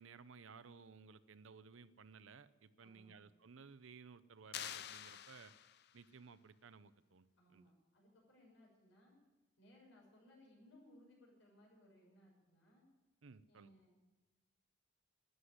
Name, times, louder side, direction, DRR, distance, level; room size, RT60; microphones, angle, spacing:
voice 1, 0.0-5.5 5.9-7.3 7.5-7.6 13.2-13.7, right 5 dB, 75° right, 14 dB, 0.7 m, -58 dB
voice 2, 2.8-3.2 7.4-9.1 9.6-12.8 13.5-14.0, left 1 dB, 70° left, -1 dB, 6.3 m, -65 dB
sound 1, 4.5-6.0, left 10 dB, 55° left, 0.5 m, -48 dB
13.0 x 9.8 x 9.4 m, 1.1 s
head